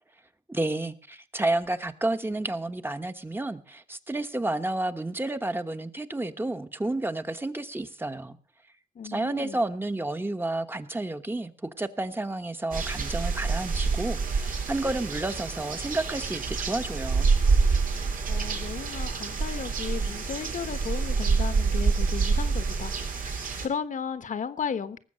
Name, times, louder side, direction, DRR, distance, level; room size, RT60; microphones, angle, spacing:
voice 1, 0.5-8.4 9.0-17.3, right 2 dB, 15° right, 8 dB, 1.1 m, -31 dB
voice 2, 8.9-9.6 18.3-22.9 23.6-25.0, left 6 dB, 70° left, 12 dB, 1.2 m, -34 dB
sound 1, 12.7-23.7, right 4 dB, 85° right, 3.3 m, -27 dB
19.0 x 7.7 x 6.3 m, 0.40 s
wide cardioid pair, 100°, 14 cm